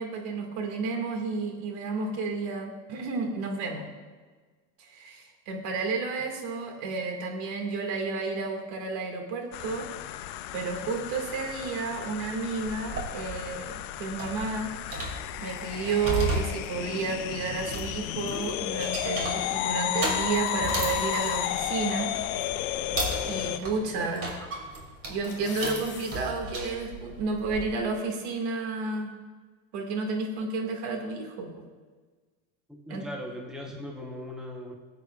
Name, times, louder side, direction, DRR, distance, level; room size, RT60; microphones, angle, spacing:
voice 1, 0.0-3.9 4.8-10.3 10.5-14.7 15.4-22.1 23.3-24.3 25.1-29.1 29.7-31.6 32.9-33.0, right 4 dB, 65° right, 2 dB, 2.1 m, -31 dB
sound 1, 9.5-23.6, left 13 dB, 75° left, 0.7 m, -33 dB
sound 2, 12.7-27.7, right 1 dB, 30° right, 2.5 m, -36 dB
sound 3, 20.5-21.7 22.3-22.4 24.0-24.3 24.7-26.3 26.7-26.8, left 5 dB, 30° left, 3.1 m, -43 dB
voice 2, 23.5-24.1 32.7-34.8, left 1 dB, ahead, 0 dB, 0.9 m, -40 dB
17.5 x 8.3 x 2.4 m, 1.4 s
supercardioid pair, 135°, 43 cm